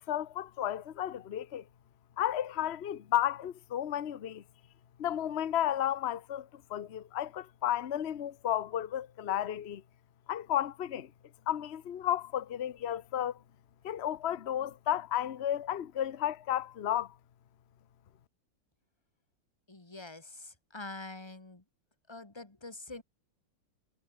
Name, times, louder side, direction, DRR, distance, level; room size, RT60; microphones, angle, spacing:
voice 1, 0.0-1.6 2.2-4.4 5.0-9.8 10.3-11.1 11.5-13.4 13.8-17.1, left 11 dB, 70° left, 0.6 m, -33 dB
voice 2, 19.7-21.6 22.1-23.0, left 2 dB, 10° left, 2.3 m, -45 dB
omnidirectional pair, 2.4 m